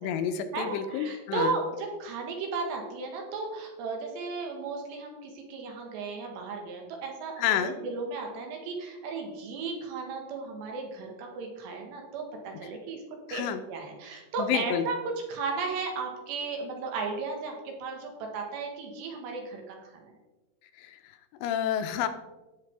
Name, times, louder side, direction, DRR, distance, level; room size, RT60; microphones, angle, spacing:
voice 1, 0.0-1.6 7.4-7.8 12.6-12.7 13.3-13.6 14.4-14.9 20.8-22.1, left 9 dB, 80° left, 8 dB, 2.8 m, -30 dB
voice 2, 0.5-13.0 13.3-15.0 15.3-19.8, right 4 dB, 75° right, 2 dB, 3.6 m, -35 dB
17.5 x 6.3 x 3.5 m, 1.1 s
omnidirectional pair, 5.2 m